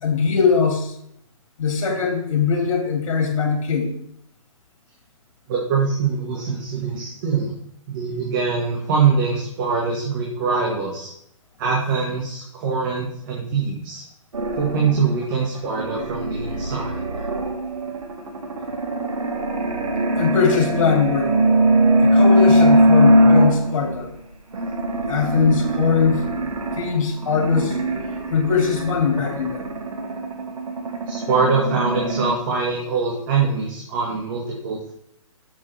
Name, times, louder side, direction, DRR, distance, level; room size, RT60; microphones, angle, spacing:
voice 1, 0.0-0.9 1.6-3.9 20.2-21.3 22.0-24.1 25.1-26.2 26.8-27.7 28.3-29.8, left 5 dB, 65° left, 1 dB, 2.9 m, -21 dB
voice 2, 5.5-7.5 7.9-11.1 11.6-14.0 14.6-17.0 31.1-34.9, right 5 dB, 35° right, -1 dB, 1.8 m, -23 dB
sound 1, 14.3-24.0 24.5-32.3, equal, 80° right, 1.8 m, -20 dB
8.8 x 7.2 x 3.5 m, 0.73 s
hypercardioid pair, 155°, 18 cm